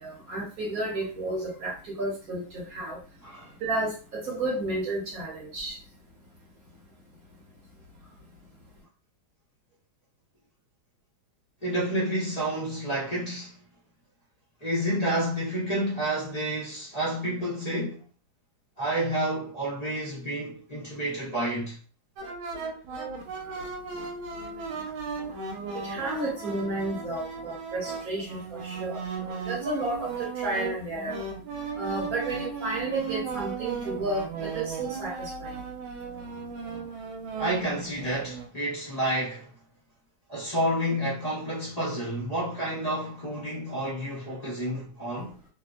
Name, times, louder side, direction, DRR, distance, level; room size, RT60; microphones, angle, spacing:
voice 1, 0.0-3.0 3.6-5.7 25.8-31.1 31.8-35.3, right 2 dB, 50° right, 1.3 m, -32 dB
voice 2, 3.2-3.5 11.6-13.6 14.6-18.1 18.8-21.8 37.4-39.5 40.3-45.4, right 1 dB, 35° left, 0.6 m, -30 dB
sound 1, 22.2-38.5, right 5 dB, 80° right, 1.4 m, -36 dB
3.3 x 2.1 x 2.4 m
omnidirectional pair, 2.2 m